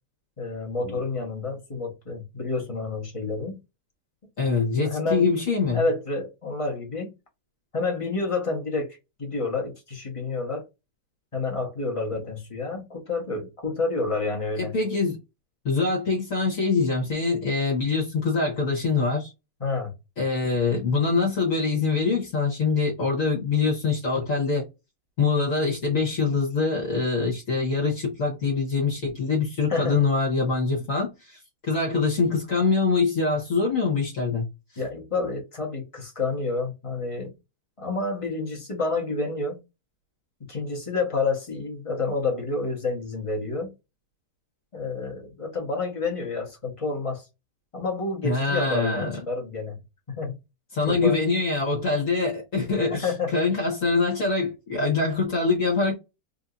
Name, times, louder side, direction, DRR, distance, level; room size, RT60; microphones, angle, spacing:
voice 1, 0.4-3.6 4.8-5.3 5.7-7.1 7.7-10.7 11.3-14.7 19.6-19.9 29.7-30.0 34.8-37.3 37.8-39.6 40.5-43.7 44.7-47.3 47.7-49.8 50.1-50.4 50.9-51.2 52.9-53.3, left 3 dB, 25° left, 1.0 m, -29 dB
voice 2, 4.4-5.8 14.6-15.2 15.6-19.3 20.2-24.7 25.2-34.5 48.2-49.1 50.7-55.9, left 4 dB, 55° left, 1.5 m, -24 dB
3.8 x 2.7 x 2.4 m
omnidirectional pair, 1.7 m